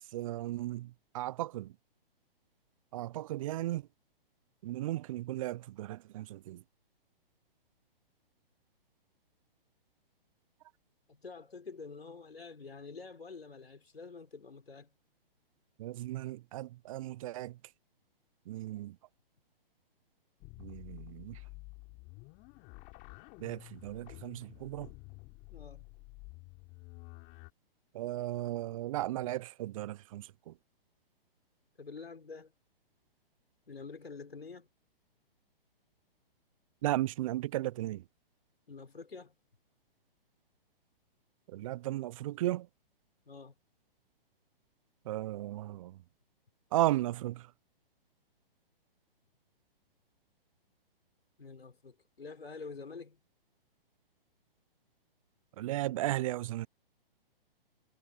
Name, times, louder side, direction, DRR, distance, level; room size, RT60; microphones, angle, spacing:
voice 1, 0.1-1.7 2.9-3.8 4.6-6.6 15.8-17.6 18.5-19.0 20.6-21.4 23.4-24.9 27.9-30.5 36.8-38.0 41.5-42.7 45.1-46.0 46.7-47.5 55.6-56.7, right 15 dB, 35° right, 0.5 m, -35 dB
voice 2, 11.1-14.9 25.5-25.9 29.2-29.3 31.8-32.5 33.7-34.7 38.7-39.3 43.3-43.5 51.4-53.2, left 4 dB, 85° left, 4.8 m, -47 dB
sound 1, 20.4-27.5, left 27 dB, 30° left, 3.5 m, -51 dB
hypercardioid pair, 130°, 29 cm